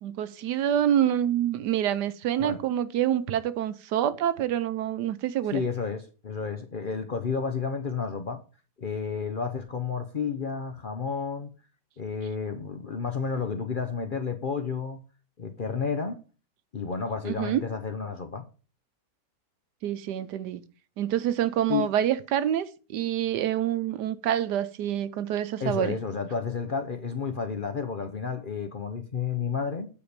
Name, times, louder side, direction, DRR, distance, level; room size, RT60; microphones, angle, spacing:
voice 1, 0.0-5.6 17.2-17.6 19.8-20.6 21.0-26.0, right 10 dB, 85° right, 1.4 m, -27 dB
voice 2, 5.5-8.4 8.8-11.5 12.0-15.0 15.4-16.2 16.7-18.4 21.7-21.9 25.6-29.9, left 5 dB, 45° left, 0.7 m, -31 dB
8.7 x 4.9 x 6.7 m
omnidirectional pair, 1.7 m